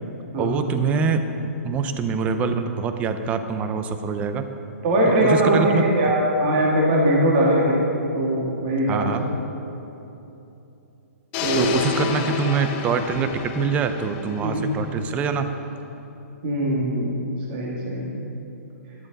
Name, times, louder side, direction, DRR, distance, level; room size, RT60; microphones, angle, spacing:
voice 1, 0.4-4.5 5.2-5.8 8.9-9.2 11.5-15.5, right 5 dB, 15° right, 8 dB, 0.6 m, -24 dB
voice 2, 4.8-7.8 8.1-9.1 11.4-11.8 14.4-14.6 16.4-17.2 17.5-18.1, right 1 dB, 35° right, -4 dB, 2.4 m, -21 dB
sound 1, 11.3-15.4, left 6 dB, 25° left, 0.9 m, -30 dB
13.0 x 11.5 x 4.1 m, 2.9 s
hypercardioid pair, 155°, 8 cm